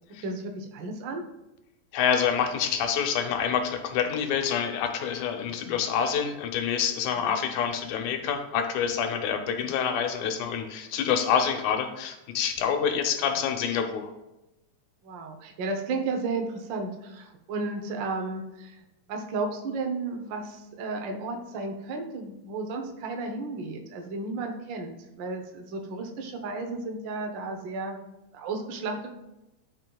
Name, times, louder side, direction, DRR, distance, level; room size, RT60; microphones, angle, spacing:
voice 1, 0.1-1.2 7.2-7.4 15.0-18.7 19.1-28.0 28.3-29.1, right 3 dB, 80° right, 3 dB, 1.0 m, -33 dB
voice 2, 1.9-14.1, left 7 dB, 85° left, 6 dB, 2.2 m, -27 dB
12.5 x 5.4 x 2.3 m, 0.95 s
omnidirectional pair, 3.3 m